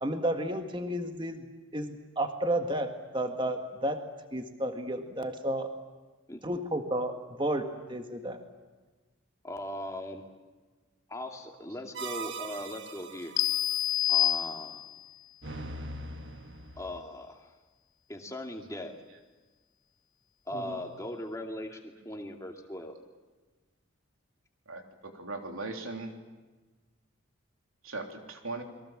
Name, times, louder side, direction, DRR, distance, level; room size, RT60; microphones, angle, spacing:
voice 1, 0.0-1.4 1.7-4.0 4.3-5.7 6.4-7.6 7.9-8.4 20.5-20.8, right 1 dB, 20° right, 6 dB, 1.7 m, -32 dB
voice 2, 9.4-10.2 11.1-13.3 14.1-14.8 16.8-17.4 18.1-18.9 20.5-21.8 22.0-22.9, left 1 dB, 15° left, 3 dB, 2.4 m, -39 dB
sound 1, 11.9-13.6 15.4-17.0, right 3 dB, 55° right, 1.7 m, -41 dB
sound 2, 13.4-15.1, left 12 dB, 55° left, 0.9 m, -28 dB
voice 3, 24.7-26.1 27.8-28.6, right 3 dB, 70° right, 4 dB, 3.4 m, -39 dB
29.0 x 22.5 x 7.5 m, 1.3 s
head